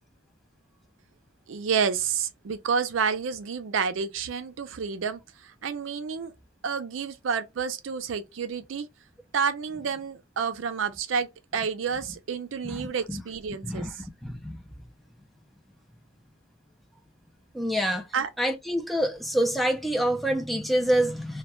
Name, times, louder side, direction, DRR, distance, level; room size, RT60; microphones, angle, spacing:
voice 1, 1.5-5.2 5.6-6.3 6.6-8.9 9.3-13.9 18.1-18.3, right 6 dB, 85° right, 0.4 m, -29 dB
voice 2, 12.6-13.2 13.6-13.9 14.2-14.6 17.5-18.1 18.4-21.4, right 1 dB, ahead, 0.3 m, -26 dB
2.2 x 2.1 x 2.9 m
head